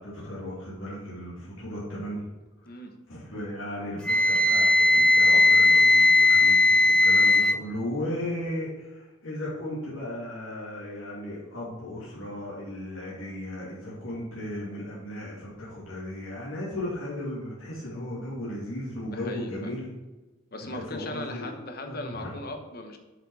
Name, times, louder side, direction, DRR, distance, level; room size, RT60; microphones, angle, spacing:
voice 1, 0.0-2.3 3.1-19.9 20.6-21.6 21.8-22.3, left 1 dB, 75° left, -8 dB, 2.7 m, -36 dB
voice 2, 2.6-3.0 5.3-5.5 19.0-19.8 20.5-23.0, left 2 dB, 45° left, 5 dB, 1.1 m, -38 dB
Wind instrument woodwind instrument, 4.0-7.6, left 2 dB, 5° left, 0.3 m, -18 dB
8.0 x 5.5 x 4.9 m, 1.2 s
head